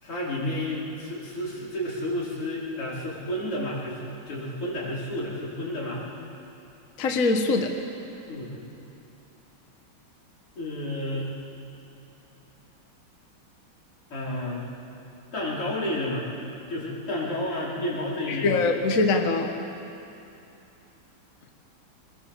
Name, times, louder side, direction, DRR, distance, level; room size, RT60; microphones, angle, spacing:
voice 1, 0.0-6.0 8.3-8.6 10.6-11.3 14.1-14.6 15.3-16.3 16.7-18.6, left 1 dB, 85° left, -6 dB, 5.4 m, -31 dB
voice 2, 7.0-7.7 18.3-19.5, left 3 dB, 45° left, 4 dB, 1.6 m, -23 dB
22.5 x 21.5 x 7.4 m, 2.9 s
omnidirectional pair, 2.4 m